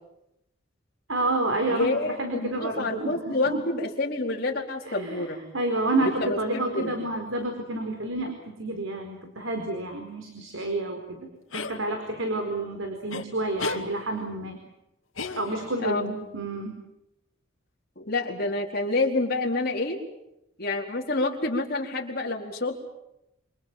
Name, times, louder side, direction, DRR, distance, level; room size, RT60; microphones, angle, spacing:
voice 1, 1.1-3.6 4.9-5.2 5.5-11.2 11.5-14.6 15.4-16.8, right 2 dB, 80° right, 4 dB, 4.6 m, -29 dB
voice 2, 1.7-5.4 6.0-7.0 15.8-16.1 18.0-20.0 20.6-22.8, left 2 dB, 50° left, -1 dB, 4.5 m, -28 dB
sound 1, 11.5-11.8 13.1-13.2 13.6-13.8 15.2-15.8, left 3 dB, 80° left, 2.4 m, -33 dB
28.0 x 27.5 x 7.6 m, 0.87 s
head